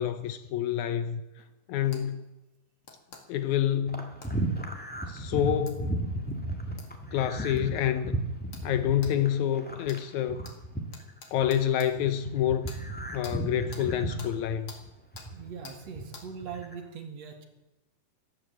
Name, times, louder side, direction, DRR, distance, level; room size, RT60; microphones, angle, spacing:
voice 1, 0.0-1.2 1.7-2.2 3.3-4.1 5.1-6.0 7.1-8.1 8.6-10.4 11.3-12.8 13.1-14.7, left 10 dB, 75° left, 2.0 m, -28 dB
sound 1, 1.9-2.0 2.8-3.2 4.2-4.3 5.7-5.8 6.8-6.9 7.6-7.7 8.5-8.7 9.0-9.1 9.9-10.0 10.4-10.6 10.9-11.9 12.7-12.8 13.2-13.4 13.7-13.9 14.2-14.3 14.7-14.8 15.2-15.3 15.6-15.8 16.1-16.3, left 4 dB, 45° left, 2.7 m, -46 dB
sound 2, 3.9-11.6 12.0-15.5 15.8-16.7, right 1 dB, 5° left, 0.8 m, -34 dB
voice 2, 15.3-17.5, right 6 dB, 60° right, 2.7 m, -41 dB
16.0 x 11.5 x 7.6 m
omnidirectional pair, 3.7 m